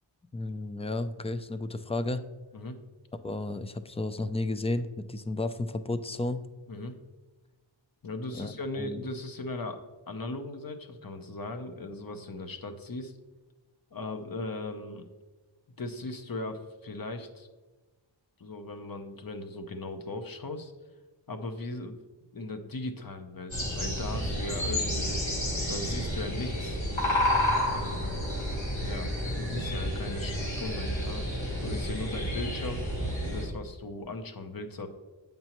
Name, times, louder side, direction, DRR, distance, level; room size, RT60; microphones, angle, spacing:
voice 1, 0.3-2.2 3.2-6.4 8.3-9.0, left 2 dB, 15° left, 11 dB, 0.3 m, -33 dB
voice 2, 8.0-9.8 10.1-13.1 13.9-15.1 15.8-17.5 18.4-20.7 21.3-22.0 22.3-25.2 25.7-26.9 27.7-28.2 28.7-31.3 31.6-32.8 33.2-34.9, left 2 dB, 50° left, 7 dB, 0.8 m, -38 dB
sound 1, 23.5-33.4, equal, 90° left, 2.1 m, -30 dB
7.9 x 5.3 x 3.0 m, 1.2 s
wide cardioid pair, 50°, 46 cm